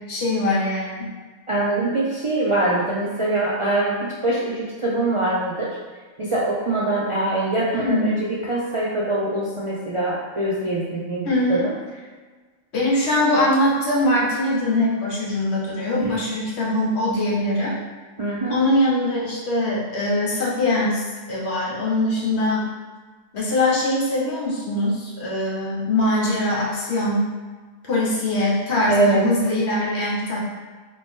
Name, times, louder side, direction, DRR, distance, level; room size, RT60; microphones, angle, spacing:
voice 1, 0.1-1.1 7.8-8.1 11.3-11.6 12.7-17.8 18.5-21.0 21.3-22.7 23.3-27.3 27.9-30.4, left 1 dB, 60° left, -4 dB, 1.2 m, -22 dB
voice 2, 1.5-5.8 6.2-11.7 16.0-16.2 18.2-18.6 28.9-29.3, right 2 dB, 50° right, -7 dB, 0.3 m, -23 dB
3.6 x 2.7 x 3.5 m, 1.4 s
omnidirectional pair, 1.3 m